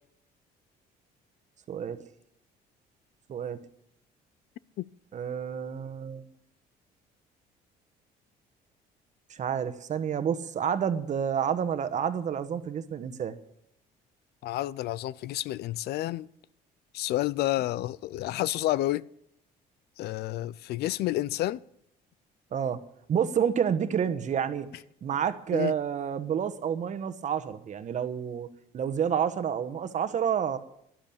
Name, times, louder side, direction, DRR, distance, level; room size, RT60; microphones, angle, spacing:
voice 1, 3.3-3.6 5.1-6.3 9.3-13.4 22.5-22.8 23.1-24.7 25.0-28.5 28.7-30.6, right 8 dB, 45° right, 1.2 m, -29 dB
voice 2, 14.4-16.3 16.9-19.0 20.0-21.6 25.5-25.7, left 15 dB, 70° left, 0.5 m, -30 dB
12.0 x 11.5 x 8.5 m
cardioid pair, 110°, 17 cm